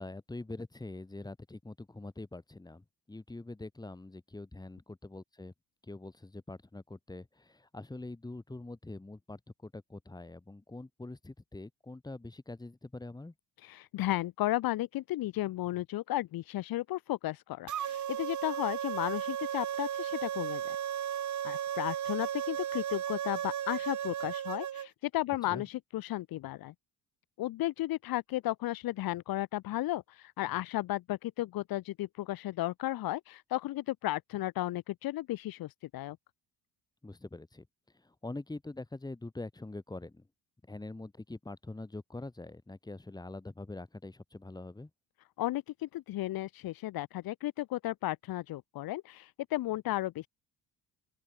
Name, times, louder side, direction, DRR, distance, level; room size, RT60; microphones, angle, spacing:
voice 1, 0.0-5.5 5.9-13.3 25.5-25.6 37.0-37.7 38.0-40.2 40.7-44.9, left 2 dB, 10° left, 2.2 m, -44 dB
voice 2, 13.6-20.8 21.4-26.7 27.4-36.2 45.4-50.3, left 16 dB, 60° left, 1.0 m, -34 dB
sound 1, 17.7-24.9, right 10 dB, 45° right, 2.1 m, -35 dB
open air
cardioid pair, 105°, 39 cm